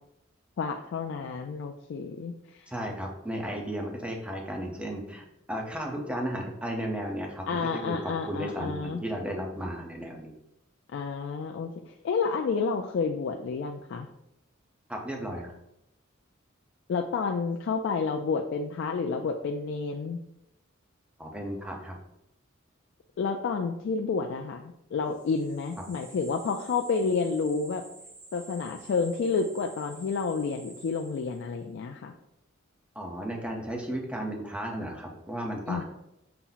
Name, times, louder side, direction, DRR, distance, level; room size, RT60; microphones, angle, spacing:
voice 1, 0.6-2.7 7.5-9.0 10.9-14.1 16.9-20.2 23.2-27.8 28.3-32.1 35.7-35.8, left 5 dB, 60° left, 3 dB, 0.3 m, -30 dB
voice 2, 2.7-10.3 14.9-15.5 21.2-22.0 32.9-35.8, equal, 5° right, 0 dB, 0.7 m, -34 dB
sound 1, 25.1-31.6, right 3 dB, 65° right, 1.1 m, -50 dB
5.6 x 2.0 x 3.9 m, 0.81 s
head